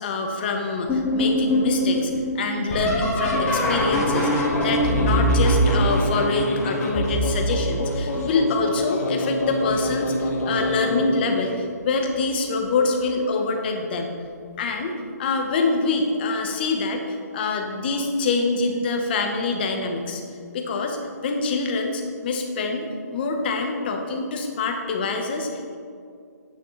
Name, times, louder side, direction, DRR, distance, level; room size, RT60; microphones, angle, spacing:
voice 1, 0.0-14.1 14.6-20.2 20.5-25.8, left 3 dB, 35° left, 4 dB, 1.1 m, -25 dB
sound 1, 0.9-8.6 9.2-9.8 10.2-10.9 12.1-12.2 12.9-13.3 15.4-15.5 17.9-18.0, equal, 10° left, 1.6 m, -24 dB
sound 2, 3.2-11.6, left 1 dB, 60° left, 1.5 m, -28 dB
9.8 x 9.1 x 3.2 m, 2.3 s
hypercardioid pair, 160°, 9 cm